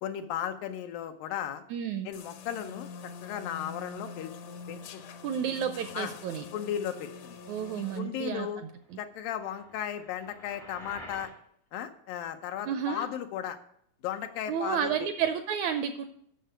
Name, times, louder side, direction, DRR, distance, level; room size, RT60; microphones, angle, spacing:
voice 1, 0.0-1.6 2.1-2.9 3.2-5.0 5.9-6.1 6.5-7.4 7.8-8.6 9.0-11.3 11.7-13.6 14.0-15.1, left 9 dB, 85° left, 7 dB, 2.6 m, -35 dB
voice 2, 1.7-2.1 5.2-6.5 7.5-8.5 8.9-9.0 12.6-13.1 14.5-16.0, right 8 dB, 80° right, 8 dB, 1.7 m, -31 dB
sound 1, 2.1-8.0, left 5 dB, 70° left, 1.8 m, -45 dB
sound 2, 9.1-11.4, left 1 dB, 20° left, 0.5 m, -49 dB
8.6 x 6.6 x 7.7 m, 0.68 s
omnidirectional pair, 3.9 m